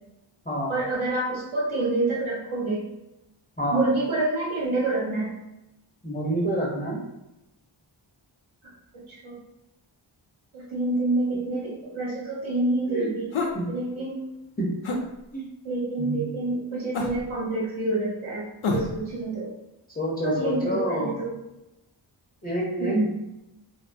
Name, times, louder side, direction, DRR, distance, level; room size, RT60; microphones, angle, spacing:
voice 1, 0.7-2.8 3.7-5.3 8.9-9.4 10.5-13.3 13.7-14.2 15.6-18.5 18.7-19.5 20.2-21.3 22.8-23.1, right 2 dB, 75° right, -4 dB, 0.8 m, -27 dB
voice 2, 6.0-7.0 12.9-13.1 13.5-13.7 14.6-14.7 15.3-15.5 16.0-16.3 19.9-21.1 22.4-23.1, right 1 dB, 20° left, -4 dB, 0.5 m, -28 dB
sound 1, 13.3-13.6 14.8-15.0 16.9-17.3 18.6-19.0, left 2 dB, 80° left, 0.5 m, -27 dB
2.7 x 2.1 x 2.5 m, 0.93 s
wide cardioid pair, 40°, 48 cm